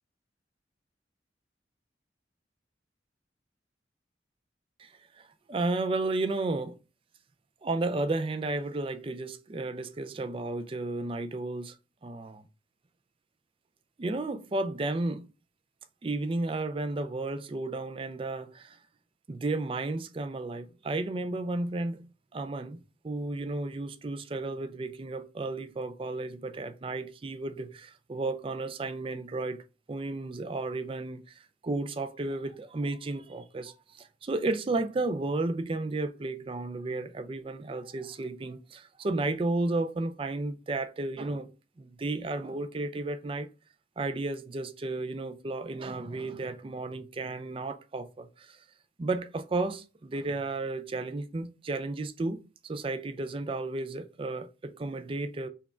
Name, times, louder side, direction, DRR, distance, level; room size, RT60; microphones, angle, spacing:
voice 1, 4.8-6.8 7.6-12.4 14.0-15.3 16.0-18.8 19.3-29.6 29.9-41.5 41.8-43.5 44.0-48.6 49.0-55.5, right 2 dB, 30° right, 0.4 m, -33 dB
4.5 x 2.3 x 4.3 m
head